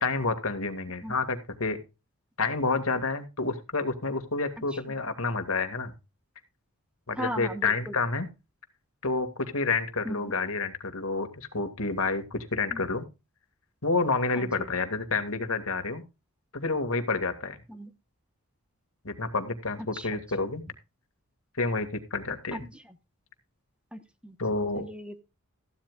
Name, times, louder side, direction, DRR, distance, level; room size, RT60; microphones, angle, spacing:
voice 1, 0.0-1.8 2.4-5.9 7.1-8.3 9.0-13.0 13.8-16.0 16.5-17.6 19.0-20.6 21.6-22.6 24.4-24.8, left 3 dB, 70° left, 9 dB, 2.2 m, -29 dB
voice 2, 7.2-7.7 10.1-10.2 12.7-12.8 14.3-14.7 17.7-17.9 19.9-20.1 22.5-22.6 23.9-24.3 24.8-25.2, equal, 5° right, 9 dB, 1.2 m, -37 dB
15.0 x 12.0 x 2.4 m, 0.27 s
head